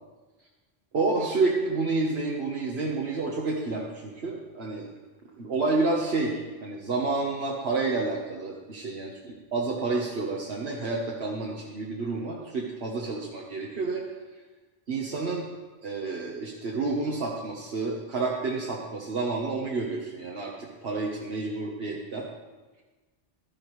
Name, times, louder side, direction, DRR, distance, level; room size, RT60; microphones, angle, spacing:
voice 1, 0.9-4.9 5.4-14.0 14.9-15.5 15.8-22.3, right 3 dB, 85° right, -3 dB, 1.4 m, -29 dB
15.5 x 12.0 x 3.2 m, 1.2 s
omnidirectional pair, 1.0 m